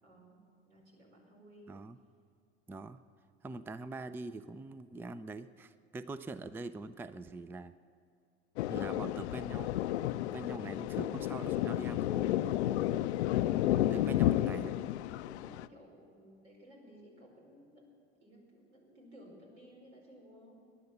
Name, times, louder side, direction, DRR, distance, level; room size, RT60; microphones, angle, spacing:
voice 1, 0.0-1.7 12.8-13.1 13.8-14.2 15.2-17.9 18.2-20.6, equal, 80° right, -1 dB, 5.1 m, -57 dB
voice 2, 1.7-2.0 2.7-3.0 3.4-7.7 8.7-9.8 10.3-12.4 13.9-14.9, right 3 dB, 5° right, 14 dB, 0.4 m, -43 dB
Thunder, 8.6-15.7, left 13 dB, 70° left, 0.5 m, -32 dB
18.5 x 11.0 x 6.9 m, 2.4 s
hypercardioid pair, 75°, 34 cm